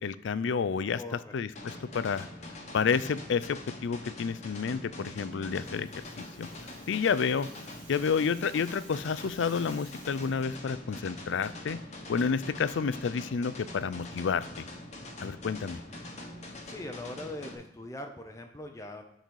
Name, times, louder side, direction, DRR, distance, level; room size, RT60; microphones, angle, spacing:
voice 1, 0.0-1.0 1.3-2.3 2.7-5.9 6.2-6.5 6.9-7.5 7.9-11.8 12.1-14.7 15.2-15.8, left 6 dB, 70° left, 16 dB, 0.4 m, -30 dB
voice 2, 1.0-1.4 16.6-19.0, left 1 dB, 15° left, 4 dB, 0.6 m, -41 dB
sound 1, 1.6-17.6, left 1 dB, 35° left, 1.1 m, -44 dB
Rattle (instrument), 5.3-10.6, right 3 dB, 45° right, 2.6 m, -55 dB
10.5 x 4.1 x 4.6 m, 0.83 s
head